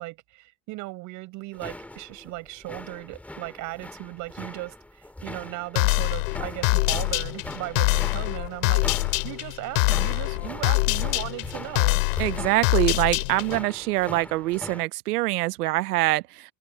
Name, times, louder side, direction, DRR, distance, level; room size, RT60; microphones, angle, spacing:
voice 1, 0.0-8.9 9.2-12.0, right 21 dB, 40° right, 6.6 m, -37 dB
sound 1, 1.5-14.8, left 1 dB, 5° left, 3.3 m, -41 dB
sound 2, 5.8-13.6, left 28 dB, 60° left, 3.1 m, -24 dB
voice 2, 12.2-16.2, right 19 dB, 80° right, 1.0 m, -24 dB
supercardioid pair, 160°, 45 cm